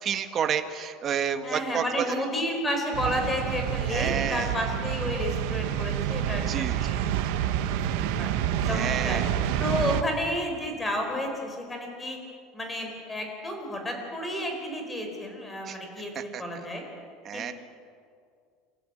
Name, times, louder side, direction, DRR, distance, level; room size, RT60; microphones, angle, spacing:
voice 1, 0.0-2.0 3.9-4.5 6.5-6.9 8.6-9.3 15.7-15.8 16.1-16.4 17.2-17.5, right 8 dB, 30° right, 8 dB, 1.5 m, -30 dB
voice 2, 1.4-7.0 7.4-7.5 8.2-8.3 8.7-9.2 9.6-12.2 12.5-16.8 17.3-17.5, left 1 dB, 10° left, 3 dB, 4.6 m, -31 dB
sound 1, 2.9-10.0, right 10 dB, 70° right, 1.6 m, -28 dB
29.0 x 15.0 x 9.0 m, 2.2 s
cardioid pair, 165°, 0 cm